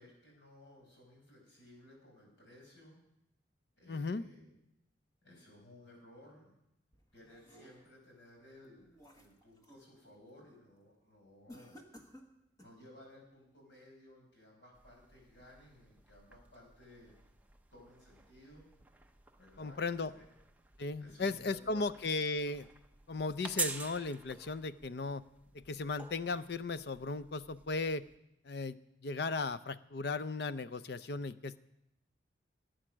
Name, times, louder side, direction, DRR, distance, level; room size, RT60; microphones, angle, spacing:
voice 1, 0.0-3.0 3.7-4.5 5.2-6.5 7.1-11.8 12.6-17.1 17.7-18.7 19.4-20.3 21.0-21.9, left 1 dB, 80° left, 0 dB, 5.2 m, -58 dB
voice 2, 3.9-4.2 19.6-20.1 20.8-22.7 23.1-25.2 25.5-28.0 28.5-28.8 29.0-31.6, left 3 dB, 60° left, 15 dB, 0.5 m, -36 dB
sound 1, 6.9-8.1 8.5-9.9 10.3-10.6 11.5-12.8, equal, 20° left, 1.3 m, -57 dB
sound 2, 14.7-28.2, right 4 dB, 10° right, 0.5 m, -47 dB
17.0 x 8.9 x 6.2 m, 0.83 s
head